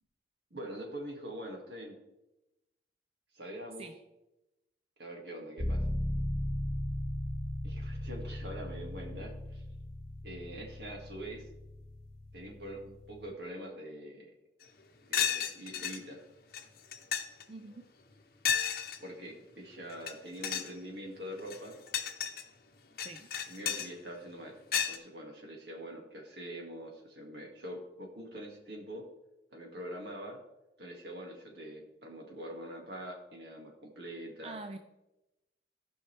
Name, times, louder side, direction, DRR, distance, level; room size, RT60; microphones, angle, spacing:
voice 1, 0.5-2.0 3.3-3.9 5.0-5.8 7.6-9.6 10.2-11.5 12.3-14.3 15.1-16.2 19.0-21.8 23.5-24.6 24.9-29.0 29.5-30.4 30.8-34.6, right 1 dB, 65° right, 1 dB, 2.0 m, -44 dB
sound 1, 5.6-13.3, left 1 dB, 35° left, 1.5 m, -37 dB
sound 2, 14.6-14.7 15.1-16.0 16.5-16.6 16.9-17.4 18.4-19.0 19.9-20.1 20.4-20.7 21.4-22.4 23.0-23.9 24.7-25.0, left 8 dB, 55° left, 0.9 m, -32 dB
voice 2, 17.5-17.8 23.0-23.3 34.4-34.8, right 2 dB, 35° right, 7 dB, 0.4 m, -44 dB
16.5 x 5.5 x 3.3 m, 0.96 s
head